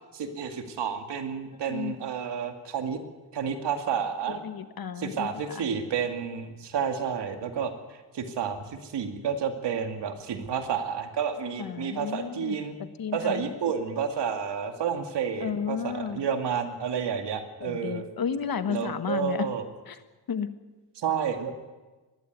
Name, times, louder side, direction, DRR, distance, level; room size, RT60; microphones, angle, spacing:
voice 1, 0.1-3.0 3.3-4.4 5.0-12.8 13.1-18.1 18.7-19.7 21.0-21.5, right 7 dB, 85° right, 6 dB, 2.4 m, -30 dB
voice 2, 4.3-5.3 5.5-5.6 11.6-12.6 13.0-13.5 15.4-16.2 17.6-19.5 19.9-20.0 20.3-20.5, left 7 dB, 60° left, 10 dB, 1.5 m, -32 dB
20.5 x 15.5 x 9.5 m, 1.2 s
cardioid pair, 85°, 41 cm